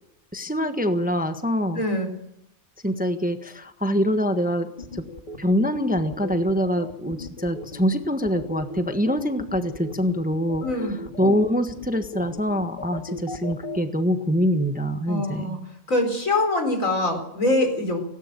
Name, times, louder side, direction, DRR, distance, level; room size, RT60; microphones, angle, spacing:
voice 1, 0.3-1.8 2.8-5.1 5.4-15.6, equal, 5° right, 7 dB, 1.2 m, -24 dB
voice 2, 1.7-2.1 10.6-11.0 15.1-15.6 15.9-18.0, left 2 dB, 75° left, 5 dB, 4.8 m, -24 dB
sound 1, 4.8-13.8, left 3 dB, 35° left, 2.1 m, -37 dB
18.0 x 17.5 x 8.3 m, 0.77 s
omnidirectional pair, 1.4 m